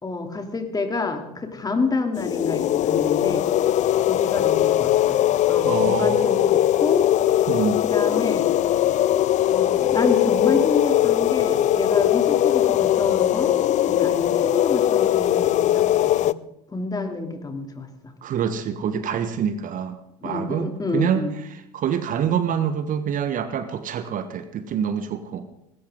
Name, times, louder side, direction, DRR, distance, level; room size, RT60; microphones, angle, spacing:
voice 1, 0.0-3.5 4.0-5.2 5.5-7.0 7.8-8.5 9.5-13.5 13.8-16.3 16.7-17.9 20.2-21.3, left 3 dB, 20° left, 5 dB, 3.0 m, -28 dB
sound 1, 2.1-16.3, left 12 dB, 35° left, 0.5 m, -20 dB
voice 2, 5.6-6.4 7.5-7.8 18.2-20.0 20.2-21.2 21.7-25.5, right 8 dB, 40° right, 11 dB, 1.3 m, -26 dB
20.5 x 17.5 x 3.8 m, 0.82 s
figure-of-eight pair, 70°, 21 cm